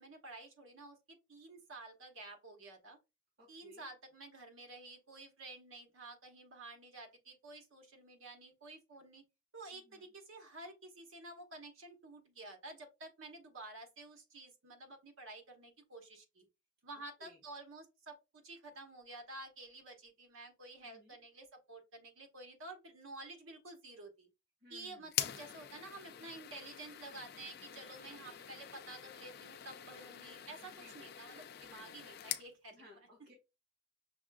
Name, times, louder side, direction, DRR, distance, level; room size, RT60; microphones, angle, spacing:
voice 1, 0.0-3.0 3.5-9.2 9.5-16.5 16.8-24.3 24.7-33.0, right 2 dB, 85° right, 3 dB, 1.1 m, -51 dB
voice 2, 3.4-3.9 9.7-10.1 17.2-17.4 20.8-21.2 24.6-25.1 30.6-31.1 31.7-31.9 32.7-33.3, left 1 dB, 50° right, -1 dB, 1.4 m, -61 dB
sound 1, 25.1-32.5, left 11 dB, 50° left, 0.4 m, -44 dB
6.0 x 2.4 x 2.3 m, 0.26 s
head